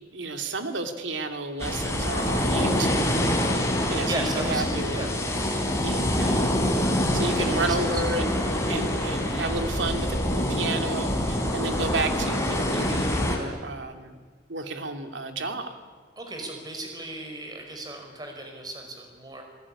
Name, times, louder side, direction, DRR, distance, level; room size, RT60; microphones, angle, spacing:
voice 1, 0.1-3.2 3.9-5.0 5.8-6.5 7.1-8.3 8.7-14.2 14.5-15.7, right 3 dB, 85° right, 6 dB, 2.7 m, -32 dB
sound 1, 1.6-13.4, left 1 dB, 15° left, 4.1 m, -25 dB
voice 2, 4.1-5.2 7.4-8.0 16.2-19.4, right 2 dB, 20° right, 3 dB, 5.2 m, -36 dB
27.5 x 19.5 x 10.0 m, 1.5 s
head